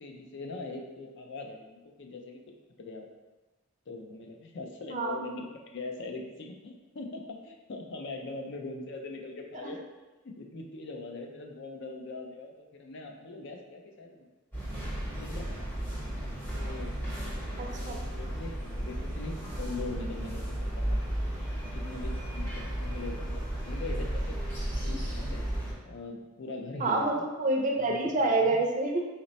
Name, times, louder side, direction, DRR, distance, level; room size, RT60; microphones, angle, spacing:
voice 1, 0.0-2.4 2.8-3.1 3.9-9.8 10.2-14.3 15.2-15.7 16.5-21.0 21.7-24.3 24.8-25.4 25.8-27.2 27.8-28.5, left 3 dB, 60° left, 2 dB, 0.5 m, -41 dB
sound 1, 14.5-25.7, right 1 dB, 10° left, 0.8 m, -34 dB
voice 2, 17.6-18.0 24.9-25.2 26.8-29.1, right 2 dB, 40° right, 2 dB, 0.5 m, -28 dB
4.0 x 2.1 x 4.0 m, 1.2 s
head